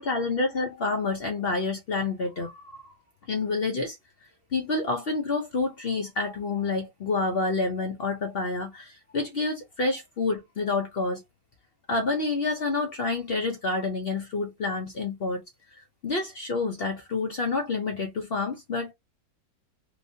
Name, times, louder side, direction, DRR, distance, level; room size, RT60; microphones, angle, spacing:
voice 1, 0.0-2.9 3.3-4.0 4.5-11.2 11.9-15.4 16.0-18.9, left 3 dB, 70° left, 0.5 m, -28 dB
3.3 x 3.0 x 2.7 m
omnidirectional pair, 2.0 m